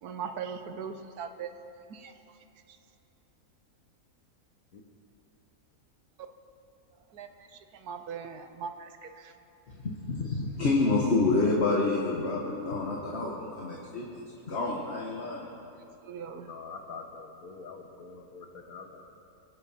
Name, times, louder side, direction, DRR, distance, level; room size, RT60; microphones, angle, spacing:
voice 1, 0.0-1.5 1.9-2.1 7.1-7.3 7.7-9.3 16.0-16.5, right 6 dB, 80° right, 8 dB, 1.4 m, -39 dB
voice 2, 9.7-15.5, left 3 dB, 45° left, -2 dB, 1.6 m, -28 dB
voice 3, 16.4-19.1, left 4 dB, 70° left, 4 dB, 1.7 m, -45 dB
24.0 x 8.7 x 5.7 m, 2.8 s
omnidirectional pair, 1.6 m